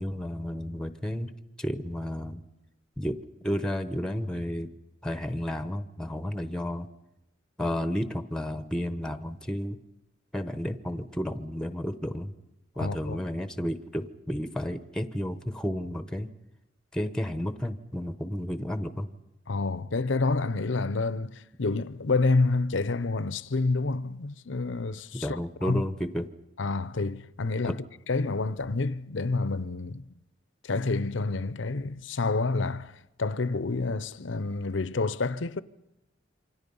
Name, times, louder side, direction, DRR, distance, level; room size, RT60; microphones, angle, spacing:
voice 1, 0.0-1.3 1.6-2.4 3.0-4.7 5.0-6.9 7.6-9.8 10.3-12.3 12.8-16.3 16.9-19.1 25.1-26.3 27.6-27.7, equal, 5° left, 0.9 m, -32 dB
voice 2, 12.8-13.2 19.5-25.8 26.6-30.1 30.6-32.9 33.2-35.6, left 3 dB, 70° left, 0.8 m, -28 dB
28.0 x 25.0 x 5.5 m
head